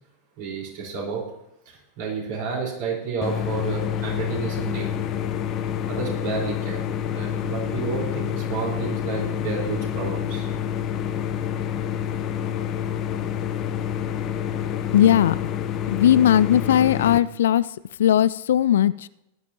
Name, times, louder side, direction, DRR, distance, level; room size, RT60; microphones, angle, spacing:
voice 1, 0.4-1.2 1.7-4.9 5.9-6.8 7.1-10.5, right 5 dB, 50° right, -1 dB, 4.5 m, -31 dB
sound 1, 3.2-17.2, left 9 dB, 35° left, 0.8 m, -28 dB
voice 2, 14.9-15.3 15.9-17.6 18.0-19.1, left 11 dB, 60° left, 19 dB, 0.3 m, -18 dB
17.5 x 11.5 x 2.9 m, 0.86 s
figure-of-eight pair, 90°, 0 cm